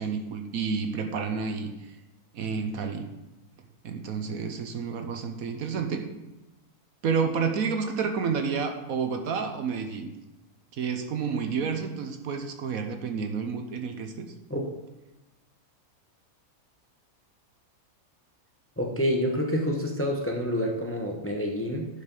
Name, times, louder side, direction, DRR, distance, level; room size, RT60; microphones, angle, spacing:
voice 1, 0.0-2.0 2.3-3.1 3.8-6.0 7.0-10.1 10.7-14.3, right 5 dB, 70° right, 6 dB, 1.3 m, -30 dB
voice 2, 18.8-21.9, equal, 10° left, 1 dB, 0.8 m, -28 dB
11.0 x 5.1 x 5.4 m, 1.0 s
omnidirectional pair, 1.6 m